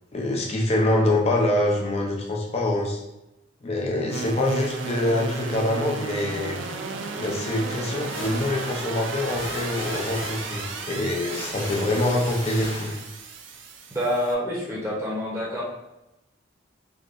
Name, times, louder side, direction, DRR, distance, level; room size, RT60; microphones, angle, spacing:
voice 1, 0.1-3.0 3.6-6.6 7.1-12.9, left 1 dB, 35° left, -1 dB, 0.5 m, -25 dB
sound 1, 4.1-14.3, right 4 dB, 75° right, 0.4 m, -34 dB
sound 2, 7.7-13.3, left 1 dB, 70° left, 1.4 m, -38 dB
voice 2, 13.9-15.6, equal, 15° right, -5 dB, 0.8 m, -27 dB
3.5 x 2.4 x 2.5 m, 0.93 s
head